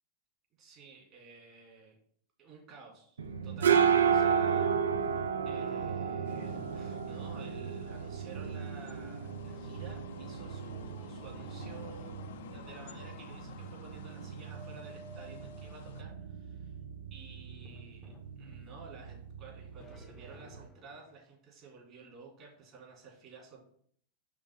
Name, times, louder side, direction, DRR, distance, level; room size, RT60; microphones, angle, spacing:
voice 1, 0.6-1.9 2.4-12.2 12.5-16.8 17.1-23.6, right 4 dB, 35° right, -2 dB, 2.7 m, -53 dB
sound 1, 3.2-20.7, right 7 dB, 65° right, 0.5 m, -33 dB
sound 2, 6.2-16.0, left 9 dB, 55° left, 0.5 m, -52 dB
sound 3, 14.5-16.5 17.6-18.9 19.8-21.2, equal, 20° left, 0.7 m, -54 dB
5.1 x 3.8 x 5.5 m, 0.62 s
figure-of-eight pair, 90°, 0 cm